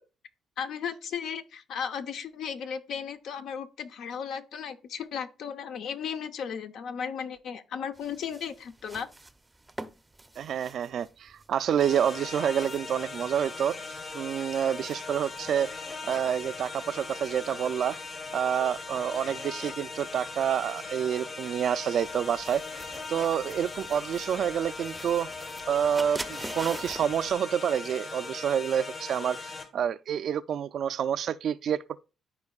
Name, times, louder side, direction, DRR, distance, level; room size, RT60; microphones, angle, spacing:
voice 1, 0.6-9.1, left 7 dB, 75° left, 0.7 m, -35 dB
sound 1, 7.9-27.3, right 2 dB, 15° right, 0.5 m, -48 dB
voice 2, 10.4-13.8 14.1-15.7 16.0-18.0 18.3-22.6 23.1-25.3 25.6-32.0, right 9 dB, 65° right, 0.3 m, -28 dB
sound 2, 11.8-29.6, left 4 dB, 50° left, 1.6 m, -39 dB
13.0 x 4.4 x 2.3 m
cardioid pair, 90°, 0 cm